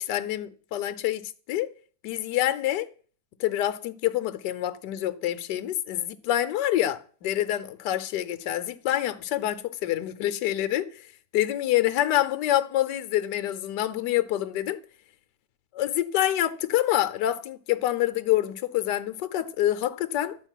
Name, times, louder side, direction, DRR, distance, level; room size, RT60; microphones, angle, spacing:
voice 1, 0.0-1.7 2.0-2.9 3.4-14.8 15.7-20.4, left 13 dB, 70° left, 1.4 m, -27 dB
12.5 x 5.2 x 9.0 m
omnidirectional pair, 2.0 m